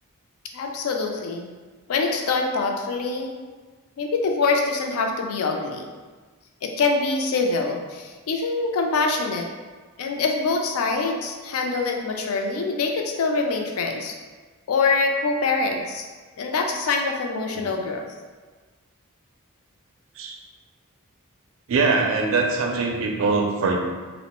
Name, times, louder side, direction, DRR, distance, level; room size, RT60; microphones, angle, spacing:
voice 1, 0.5-1.5 1.9-3.3 4.0-5.9 6.6-9.5 10.0-14.1 14.7-16.0 16.4-18.1, left 4 dB, 75° left, 3 dB, 0.4 m, -24 dB
voice 2, 21.7-23.8, right 4 dB, 60° right, 1 dB, 0.4 m, -22 dB
2.8 x 2.0 x 2.9 m, 1.4 s
head